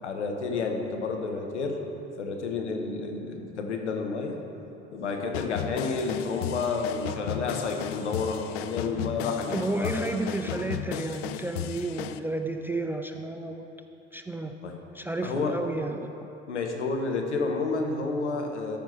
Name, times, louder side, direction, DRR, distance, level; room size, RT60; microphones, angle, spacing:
voice 1, 0.0-1.8 2.2-4.4 4.9-10.2 14.6-14.8 15.2-15.6 16.5-18.8, left 4 dB, 80° left, 3 dB, 1.0 m, -30 dB
sound 1, 5.3-12.2, left 11 dB, 60° left, 0.5 m, -35 dB
voice 2, 9.5-13.7 14.1-14.5 14.9-16.1, right 2 dB, 5° right, 5 dB, 0.3 m, -32 dB
13.5 x 5.6 x 4.4 m, 2.9 s
figure-of-eight pair, 65°, 34 cm